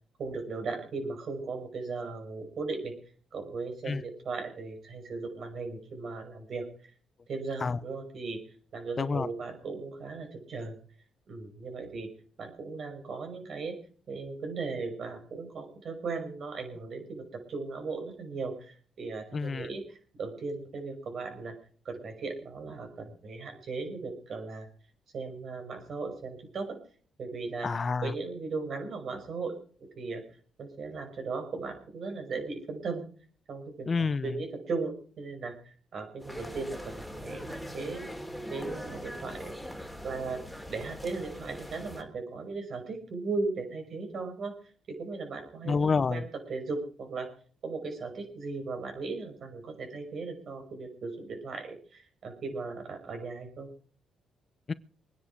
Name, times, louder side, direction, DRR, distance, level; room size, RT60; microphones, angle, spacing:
voice 1, 0.2-2.9 3.3-6.7 7.3-8.4 8.7-10.8 11.3-12.1 12.4-13.8 14.1-21.5 21.8-24.7 25.1-26.8 27.2-27.7 28.0-29.5 30.0-30.2 30.6-33.1 33.5-38.1 38.5-39.5 40.0-40.4 40.7-44.6 44.9-45.8 46.1-47.3 47.6-53.7, right 4 dB, 55° right, 5.7 m, -37 dB
voice 2, 19.3-19.7 27.6-28.1 33.9-34.4 45.6-46.2 54.7-54.8, left 4 dB, 35° left, 0.8 m, -28 dB
sound 1, 36.2-42.0, equal, ahead, 3.0 m, -41 dB
23.5 x 10.0 x 4.7 m
cardioid pair, 90°, 0 cm